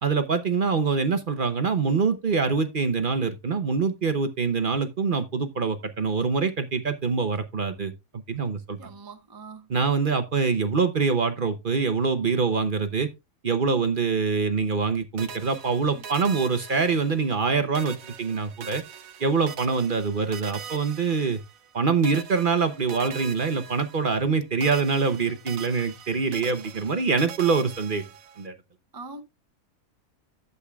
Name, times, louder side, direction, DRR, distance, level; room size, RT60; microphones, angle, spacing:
voice 1, 0.0-8.9 9.7-13.1 13.4-18.8 19.2-21.4 21.7-28.0 28.4-28.5, right 5 dB, 40° right, 0.9 m, -25 dB
voice 2, 8.8-9.7 15.9-16.0 28.9-29.2, right 3 dB, 20° right, 0.6 m, -42 dB
sound 1, 15.2-17.5 17.7-21.7 22.0-24.3 24.6-28.5, right 7 dB, 75° right, 1.2 m, -42 dB
11.5 x 8.2 x 2.3 m
omnidirectional pair, 1.5 m